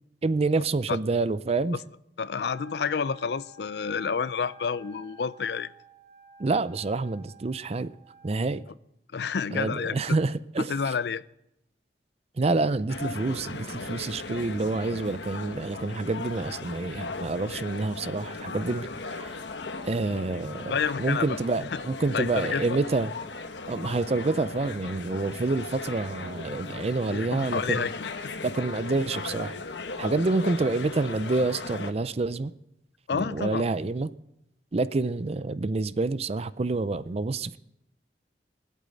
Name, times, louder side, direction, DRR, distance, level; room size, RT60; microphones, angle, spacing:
voice 1, 0.2-1.8 6.4-7.9 8.2-8.6 9.5-10.7 12.4-18.9 19.2-19.3 19.8-23.1 23.7-27.9 28.4-29.6 30.0-32.5 33.1-34.1 34.7-37.6, right 3 dB, 35° right, 0.5 m, -28 dB
voice 2, 2.2-5.7 9.1-10.2 10.7-11.2 20.7-21.8 22.1-22.8 27.1-28.3 33.1-33.7, left 6 dB, 65° left, 0.5 m, -29 dB
Wind instrument woodwind instrument, 2.5-8.6, right 1 dB, 55° right, 5.6 m, -53 dB
sound 1, 12.9-31.9, left 3 dB, 85° left, 1.2 m, -38 dB
18.5 x 8.4 x 9.2 m
head